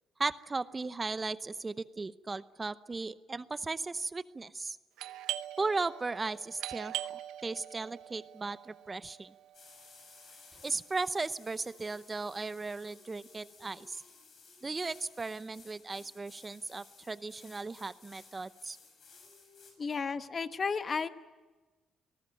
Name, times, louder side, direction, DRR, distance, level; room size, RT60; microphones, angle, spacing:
voice 1, 0.2-4.8 5.6-9.3 10.6-14.0 14.6-18.8, right 3 dB, 25° right, 14 dB, 0.7 m, -36 dB
Doorbell, 5.0-10.4, right 13 dB, 90° right, 0.8 m, -42 dB
sound 1, 9.5-19.7, left 4 dB, 55° left, 7.2 m, -57 dB
voice 2, 19.8-21.1, left 5 dB, 40° left, 10 dB, 1.2 m, -33 dB
27.5 x 19.0 x 9.0 m, 1.2 s
cardioid pair, 90°, 0 cm